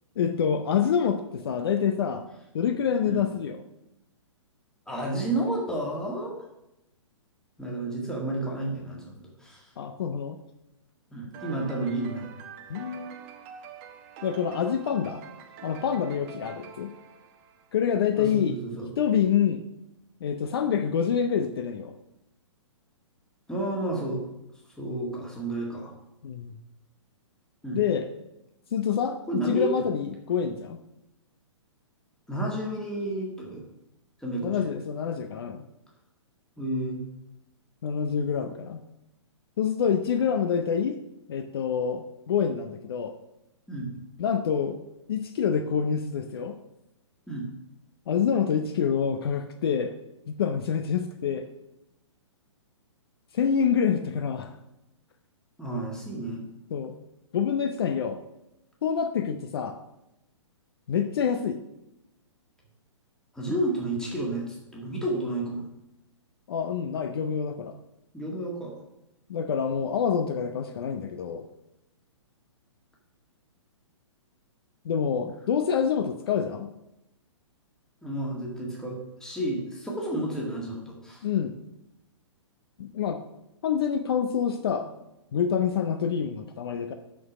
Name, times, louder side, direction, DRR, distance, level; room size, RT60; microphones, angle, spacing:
voice 1, 0.2-2.2 2.5-3.6 9.8-10.4 12.7-13.2 14.2-15.2 15.6-16.9 17.7-18.6 19.0-19.6 20.2-21.9 26.2-26.6 27.7-28.1 28.7-30.8 34.4-35.6 37.8-38.8 39.6-41.0 41.3-43.1 44.2-44.8 45.1-46.6 48.1-49.9 50.3-51.5 53.3-54.6 56.7-57.0 57.3-58.2 58.8-59.8 60.9-61.6 66.5-67.8 69.3-71.5 74.8-76.7 81.2-81.5 82.8-83.2 83.6-84.9 85.3-86.9, left 7 dB, 50° left, 8 dB, 0.6 m, -27 dB
voice 2, 4.9-6.4 7.6-9.7 11.1-12.3 18.2-18.9 23.5-24.2 24.8-25.9 27.6-27.8 29.3-29.9 32.3-33.6 34.2-34.7 36.6-37.0 43.7-43.9 47.3-47.5 55.6-56.4 63.3-65.7 68.1-68.8 78.0-81.3, right 1 dB, 5° left, -3 dB, 1.8 m, -31 dB
Pinao Melody G Major, 11.3-18.0, right 6 dB, 30° right, 0.8 m, -46 dB
6.1 x 6.1 x 6.1 m, 0.89 s
figure-of-eight pair, 120°, 16 cm